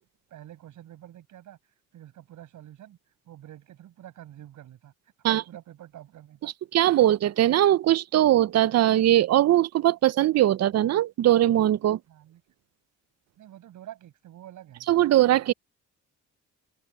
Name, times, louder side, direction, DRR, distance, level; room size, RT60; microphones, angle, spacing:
voice 1, 0.3-1.6 1.9-3.0 3.2-6.5 12.1-12.4 13.4-14.9, right 12 dB, 75° right, 7.9 m, -47 dB
voice 2, 6.4-12.0 14.9-15.5, right 13 dB, 60° right, 0.6 m, -21 dB
open air
cardioid pair, 90°, 30 cm